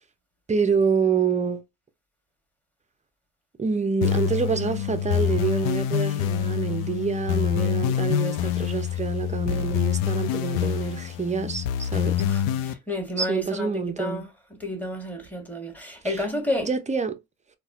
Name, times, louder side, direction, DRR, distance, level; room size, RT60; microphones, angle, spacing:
voice 1, 0.5-1.6 3.6-12.2 13.2-14.2 16.0-16.2 16.6-17.2, right 5 dB, 15° right, 0.5 m, -27 dB
sound 1, 4.0-12.7, left 10 dB, 85° left, 0.5 m, -26 dB
voice 2, 12.2-14.3 14.6-16.7, left 1 dB, 5° left, 1.2 m, -31 dB
4.0 x 2.2 x 2.4 m
supercardioid pair, 75°, 43 cm